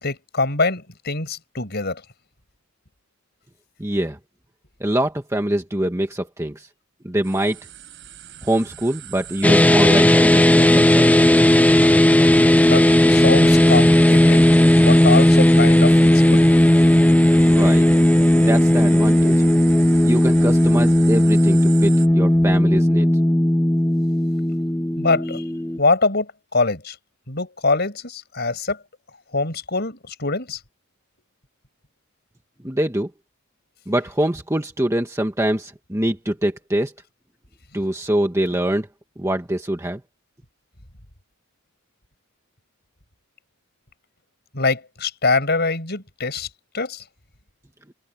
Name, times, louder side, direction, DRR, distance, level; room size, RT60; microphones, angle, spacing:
voice 1, 0.0-2.0 12.6-12.8 13.1-14.4 14.7-16.4 25.0-25.4 25.8-26.9 27.3-28.8 29.3-30.6 44.5-46.5 46.7-47.0, left 3 dB, 50° left, 5.8 m, -23 dB
voice 2, 3.8-4.2 4.8-6.7 7.0-7.6 8.4-11.5 17.5-17.9 18.3-19.4 20.0-23.1 32.6-33.1 33.9-36.9 37.7-38.9 39.2-40.0, right 1 dB, 15° right, 1.3 m, -24 dB
sound 1, 7.2-22.1, right 12 dB, 60° right, 4.4 m, -37 dB
sound 2, 9.4-25.8, left 1 dB, 5° left, 0.4 m, -15 dB
head